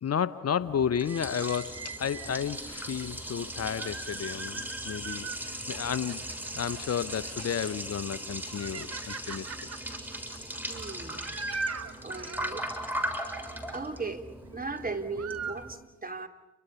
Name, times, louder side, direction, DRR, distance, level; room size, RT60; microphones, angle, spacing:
voice 1, 0.0-6.2 6.5-9.7, left 8 dB, 50° left, 15 dB, 1.0 m, -32 dB
Liquid, 0.6-15.8, right 1 dB, 5° right, 6.9 m, -38 dB
sound 1, 0.9-2.4 3.4-5.4 5.7-7.8 8.2-12.5 14.6-14.9 15.1-15.6, right 4 dB, 50° right, 2.3 m, -40 dB
voice 2, 10.7-11.3 12.0-13.3 13.7-14.2 14.5-16.3, right 3 dB, 25° right, 5 dB, 3.6 m, -38 dB
30.0 x 25.0 x 7.1 m, 0.97 s
hypercardioid pair, 40°, 32 cm